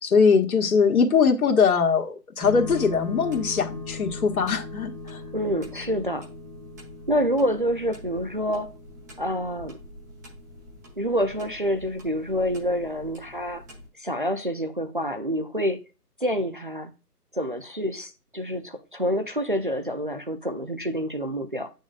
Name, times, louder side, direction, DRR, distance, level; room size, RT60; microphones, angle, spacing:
voice 1, 0.0-5.2, left 5 dB, 65° left, 1.6 m, -21 dB
sound 1, 2.4-13.9, left 3 dB, 10° right, 0.8 m, -40 dB
voice 2, 5.3-6.3 7.1-8.7 9.2-9.8 11.0-13.6 14.0-15.8 16.2-16.9 17.3-21.7, equal, 35° right, 0.4 m, -27 dB
8.3 x 6.3 x 2.3 m
figure-of-eight pair, 150°, 48 cm